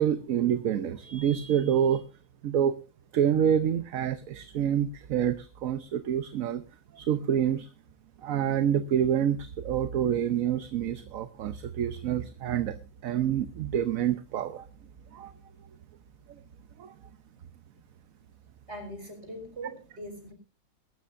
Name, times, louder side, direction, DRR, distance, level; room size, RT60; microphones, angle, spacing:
voice 1, 0.0-2.0 2.4-2.7 3.1-6.6 6.9-7.7 8.2-12.8 13.0-14.7 15.1-15.3 16.8-16.9, right 9 dB, 75° right, 10 dB, 1.2 m, -27 dB
voice 2, 18.7-20.3, right 1 dB, 50° right, 4 dB, 5.1 m, -41 dB
22.5 x 12.5 x 2.6 m, 0.32 s
omnidirectional pair, 1.5 m